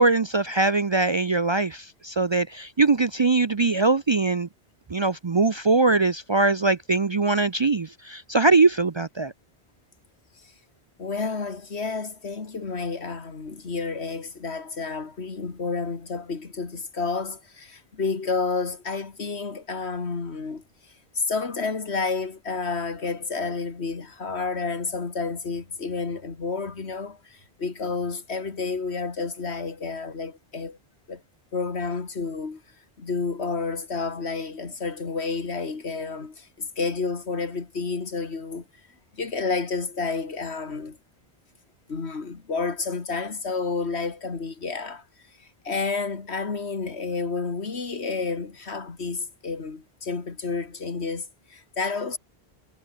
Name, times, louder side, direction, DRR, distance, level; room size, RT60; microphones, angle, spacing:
voice 1, 0.0-4.5 4.9-9.3, right 3 dB, 35° right, 0.5 m, -22 dB
voice 2, 11.0-20.6 21.2-30.8 31.1-31.2 31.5-32.6 33.0-38.6 39.1-41.0 41.9-45.0 45.4-52.2, left 4 dB, 85° left, 2.4 m, -30 dB
omnidirectional pair, 1.1 m